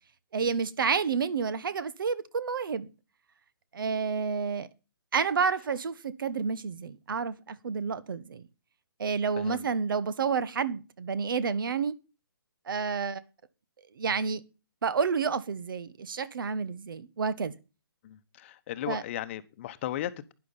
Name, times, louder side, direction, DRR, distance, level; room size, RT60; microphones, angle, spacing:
voice 1, 0.3-2.9 3.7-4.7 5.1-8.4 9.0-11.9 12.7-13.2 14.0-14.4 14.8-17.5 18.9-19.0, right 5 dB, 65° right, 1.3 m, -29 dB
voice 2, 9.4-9.7 18.0-20.3, left 12 dB, 30° left, 1.0 m, -36 dB
12.0 x 10.0 x 5.6 m
hypercardioid pair, 155°, 12 cm